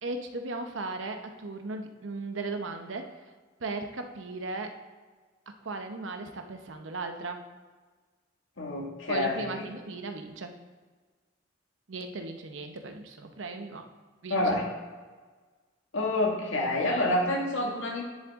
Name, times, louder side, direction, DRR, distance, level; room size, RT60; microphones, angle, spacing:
voice 1, 0.0-3.2 3.6-4.7 5.6-7.5 9.1-10.5 11.9-13.9 14.2-14.5, right 3 dB, 80° right, 6 dB, 0.8 m, -37 dB
voice 2, 8.6-9.6 14.3-14.6 15.9-18.0, left 1 dB, 80° left, -1 dB, 1.9 m, -28 dB
9.9 x 7.4 x 3.7 m, 1.4 s
head